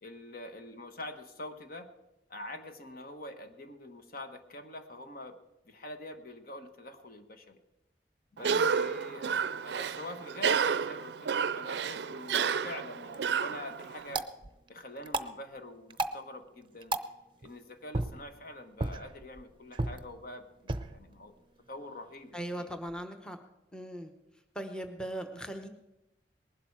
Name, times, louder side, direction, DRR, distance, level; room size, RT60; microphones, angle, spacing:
voice 1, 0.0-1.9 2.3-5.4 5.6-7.6 8.3-14.3 14.7-16.9 17.4-21.3 21.7-22.7, left 1 dB, 55° left, 7 dB, 1.3 m, -45 dB
Cough, 8.4-14.2, right 6 dB, 70° right, 0.4 m, -31 dB
sound 1, 12.9-23.0, right 2 dB, 30° right, 0.6 m, -39 dB
voice 2, 22.3-23.4 23.7-24.1 24.5-25.7, right 1 dB, 5° left, 6 dB, 0.9 m, -39 dB
20.0 x 11.5 x 4.8 m, 0.95 s
head